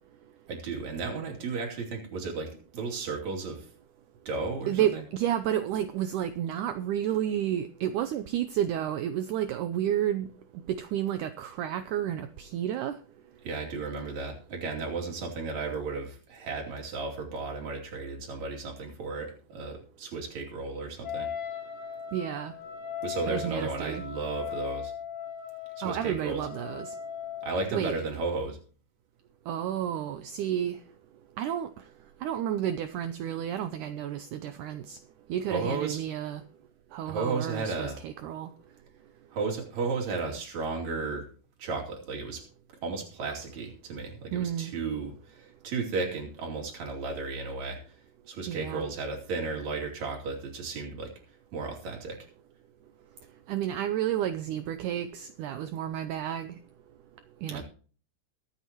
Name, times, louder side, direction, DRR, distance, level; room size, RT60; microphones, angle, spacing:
voice 1, 0.5-3.7 4.3-5.0 13.4-21.3 23.0-24.9 25.8-26.4 27.4-28.6 35.5-36.0 37.1-38.0 39.3-41.3 41.6-42.4 42.8-47.8 48.3-51.1 51.5-52.2 57.5-57.6, right 4 dB, 50° right, 3.9 m, -34 dB
voice 2, 4.7-10.3 10.7-13.0 22.1-22.5 23.3-24.0 25.8-26.9 27.7-28.0 29.5-30.8 31.4-31.7 32.2-35.0 35.3-36.4 36.9-38.5 44.3-44.7 48.5-48.9 53.5-56.5 57.4-57.6, right 11 dB, 85° right, 1.8 m, -31 dB
Wind instrument woodwind instrument, 21.0-27.7, left 8 dB, 75° left, 4.2 m, -38 dB
23.0 x 8.3 x 3.0 m
omnidirectional pair, 4.3 m